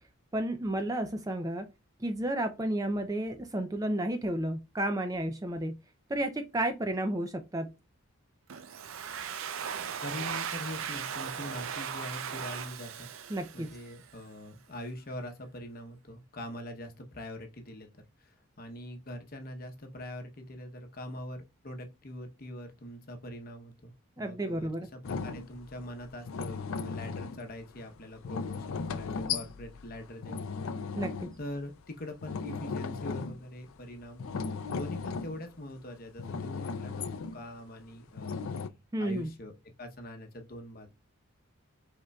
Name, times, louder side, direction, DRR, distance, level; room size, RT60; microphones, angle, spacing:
voice 1, 0.3-1.7 2.0-5.8 6.1-7.7 13.3-13.7 24.2-24.9 30.9-31.3 38.9-39.3, right 1 dB, 15° right, 0.4 m, -32 dB
Domestic sounds home sounds, 8.5-14.1, right 7 dB, 70° right, 0.5 m, -38 dB
voice 2, 10.0-13.1 13.5-30.7 31.4-38.5 39.0-39.5 39.8-40.9, left 1 dB, 45° left, 0.8 m, -43 dB
sound 1, 25.0-31.8 32.1-33.7 34.0-35.8 36.2-37.5 38.2-38.7, left 5 dB, 80° left, 0.4 m, -37 dB
5.2 x 3.7 x 2.3 m
head